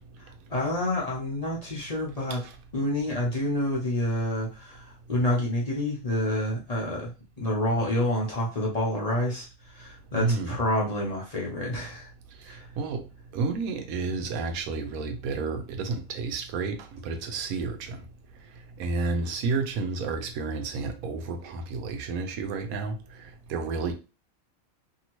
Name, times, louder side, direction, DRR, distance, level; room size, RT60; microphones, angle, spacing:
voice 1, 0.5-2.4 2.7-7.1 7.4-12.1 12.4-12.6, left 1 dB, 35° left, 0.6 m, -28 dB
voice 2, 10.1-10.6 12.5-13.0 13.3-18.0 18.8-23.9, right 4 dB, 80° right, 1.0 m, -31 dB
2.8 x 2.7 x 2.9 m
omnidirectional pair, 1.5 m